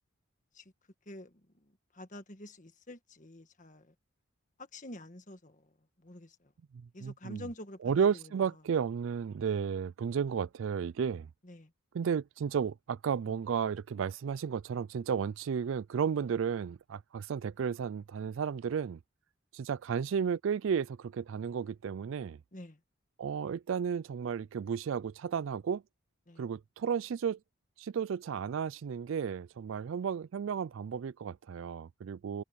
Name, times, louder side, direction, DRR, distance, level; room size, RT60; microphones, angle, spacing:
voice 1, 1.9-3.9 4.7-5.7 6.0-6.5 6.9-8.1 11.4-11.7 22.5-22.8 26.3-26.4, left 1 dB, 35° left, 1.7 m, -47 dB
voice 2, 6.7-7.5 7.8-11.3 11.9-19.0 19.5-22.4 23.2-25.8 26.4-27.4 27.8-32.4, right 7 dB, 65° right, 0.3 m, -33 dB
head